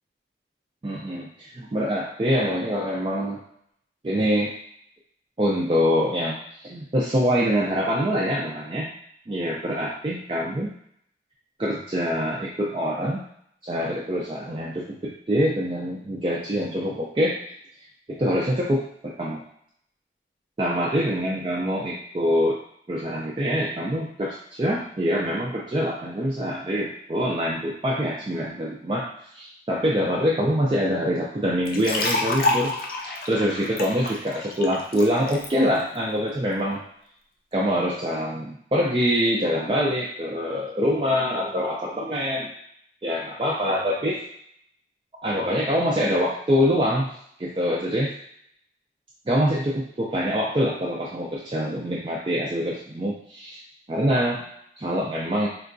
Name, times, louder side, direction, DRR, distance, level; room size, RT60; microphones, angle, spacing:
voice 1, 0.8-3.4 4.0-4.5 5.4-6.4 6.6-8.9 9.3-10.7 11.6-13.2 13.6-17.4 18.1-19.4 20.6-22.6 22.9-32.7 33.0-36.8 37.5-42.5 43.0-44.2 45.2-47.1 47.4-48.1 49.3-53.6 53.9-54.4 54.8-55.5, equal, 30° right, -5 dB, 0.3 m, -25 dB
sound 1, 31.7-35.5, left 2 dB, 50° left, 0.4 m, -28 dB
3.7 x 2.2 x 2.5 m, 0.68 s
head